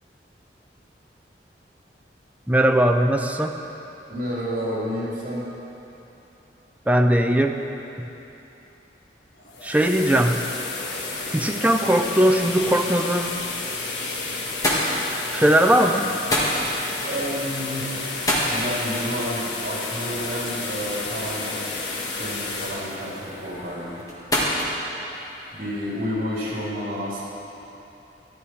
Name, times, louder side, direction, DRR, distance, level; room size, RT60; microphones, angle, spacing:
voice 1, 2.5-3.5 6.9-7.6 8.0-8.1 9.6-10.4 11.3-13.3 15.3-16.1, right 1 dB, 10° right, 4 dB, 0.5 m, -19 dB
voice 2, 4.1-5.4 17.0-17.9 18.4-21.6 22.0-24.0 25.5-27.2, equal, 50° right, -7 dB, 3.4 m, -30 dB
sound 1, 9.3-24.3, left 3 dB, 85° left, 1.5 m, -31 dB
sound 2, 14.4-26.0, equal, 20° left, 1.9 m, -30 dB
14.5 x 11.5 x 4.7 m, 3.0 s
head